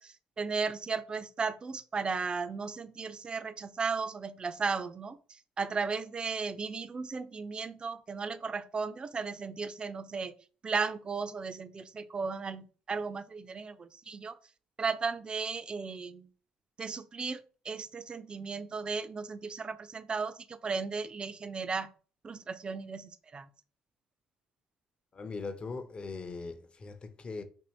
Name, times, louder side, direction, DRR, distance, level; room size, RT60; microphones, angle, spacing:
voice 1, 0.0-10.3 10.6-14.4 14.8-16.3 16.8-21.9 22.2-23.5, right 5 dB, 35° right, 0.4 m, -35 dB
voice 2, 25.1-27.4, left 4 dB, 35° left, 0.6 m, -40 dB
2.7 x 2.7 x 4.3 m
supercardioid pair, 65°, 3 cm